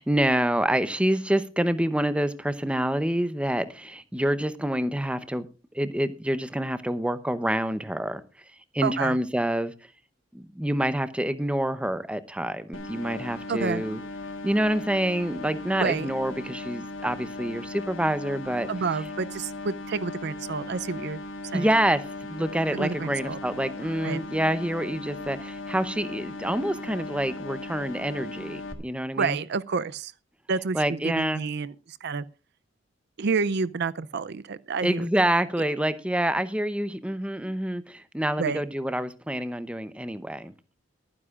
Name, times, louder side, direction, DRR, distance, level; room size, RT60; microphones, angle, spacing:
voice 1, 0.0-5.5 5.7-8.2 8.7-9.7 10.3-14.0 14.4-18.7 21.5-22.0 22.3-29.4 30.7-31.4 34.8-40.5, right 1 dB, 5° right, 0.8 m, -27 dB
voice 2, 8.8-9.2 13.5-13.8 15.8-16.1 18.7-21.2 21.5-21.7 22.7-23.4 24.0-24.2 29.1-30.1 30.5-32.3 33.2-35.1 38.4-38.6, right 5 dB, 60° right, 0.5 m, -29 dB
sound 1, 12.7-28.7, left 2 dB, 80° left, 1.6 m, -38 dB
23.5 x 9.7 x 2.4 m
head